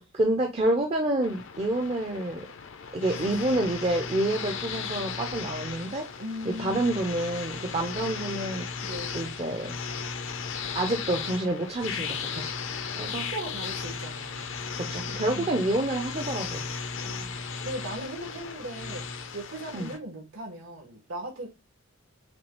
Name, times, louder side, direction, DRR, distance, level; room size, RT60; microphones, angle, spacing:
voice 1, 0.0-2.5 2.9-6.0 6.5-8.7 9.1-9.7 10.7-12.5 13.0-13.3 14.7-16.6 19.7-19.9, right 1 dB, 30° right, 0.5 m, -28 dB
sound 1, 1.2-20.0, left 5 dB, 60° left, 0.5 m, -36 dB
voice 2, 3.1-3.6 6.2-6.9 8.8-9.2 13.0-14.6 15.3-15.6 17.0-19.1 19.3-21.5, right 1 dB, 70° right, 1.5 m, -39 dB
5.9 x 2.3 x 3.0 m
head